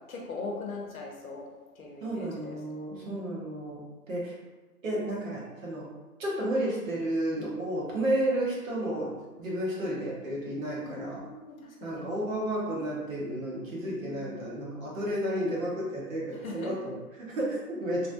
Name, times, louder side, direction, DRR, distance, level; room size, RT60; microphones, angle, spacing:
voice 1, 0.1-1.4 1.7-2.6 2.9-3.2 10.8-12.1 13.7-14.3 16.4-16.7, left 3 dB, 65° left, -1 dB, 0.8 m, -40 dB
voice 2, 2.0-4.3 4.8-5.9 6.2-9.1 9.4-11.2 11.8-18.1, right 1 dB, 55° right, -5 dB, 1.2 m, -32 dB
3.1 x 2.5 x 2.6 m, 1.2 s
hypercardioid pair, 160°, 46 cm